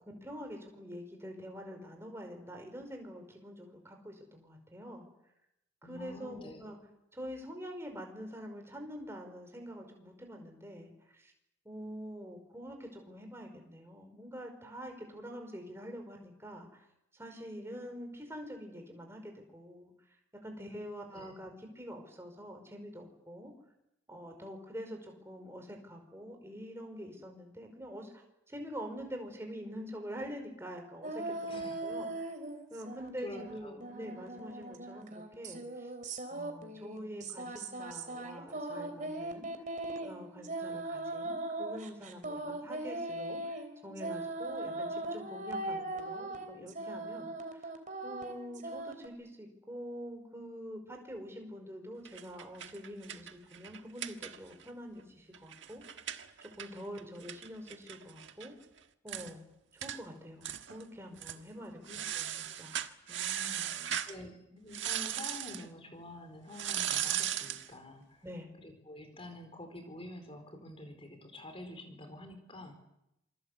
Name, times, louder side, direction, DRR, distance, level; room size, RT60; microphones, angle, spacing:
voice 1, 0.2-5.1 5.8-6.8 7.1-11.3 11.6-16.9 17.1-19.9 20.4-23.5 24.1-32.3 32.7-35.9 36.3-39.5 40.0-47.6 48.0-55.8 56.4-58.5 59.0-62.3 62.5-62.7 63.1-64.0 68.2-68.5, equal, 15° right, 3 dB, 5.2 m, -46 dB
voice 2, 5.8-6.7 21.1-21.3 31.5-31.9 33.2-33.9 61.8-62.0 64.0-68.2 68.6-72.7, left 1 dB, 30° left, 6 dB, 4.4 m, -48 dB
sound 1, 31.0-33.1 33.3-49.1, right 2 dB, 40° right, 3.6 m, -39 dB
sound 2, 52.0-54.7 55.0-55.1 55.3-58.5 58.8-58.9 59.1-59.3 59.8-60.0 60.4-60.8 61.2-61.4 61.9-64.1 64.7-65.6 66.5-67.7, right 10 dB, 65° right, 1.6 m, -37 dB
27.5 x 23.0 x 8.2 m, 0.84 s
head